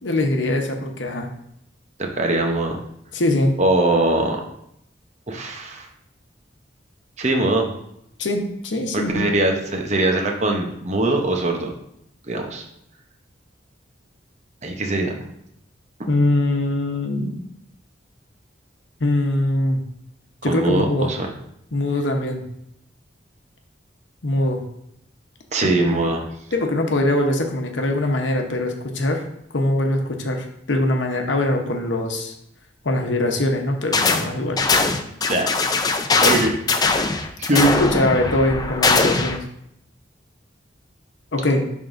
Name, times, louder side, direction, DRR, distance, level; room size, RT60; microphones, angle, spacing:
voice 1, 0.0-1.3 3.1-3.6 8.2-9.3 16.1-17.4 19.0-19.8 20.4-21.1 21.7-22.4 24.2-24.6 26.5-29.2 29.5-32.3 32.8-34.6 37.5-39.4 41.3-41.7, left 1 dB, 90° left, 3 dB, 0.9 m, -22 dB
voice 2, 2.0-2.8 3.6-4.4 5.3-5.9 7.2-7.7 8.9-11.7 12.2-12.6 14.6-15.1 20.4-21.3 25.5-26.2 35.3-35.5 35.8-35.9 36.2-36.6 37.4-37.7, right 2 dB, 40° right, 2 dB, 0.8 m, -21 dB
sound 1, 33.9-34.3 34.6-39.4, left 3 dB, 20° left, 0.4 m, -20 dB
10.5 x 3.7 x 2.6 m, 0.76 s
head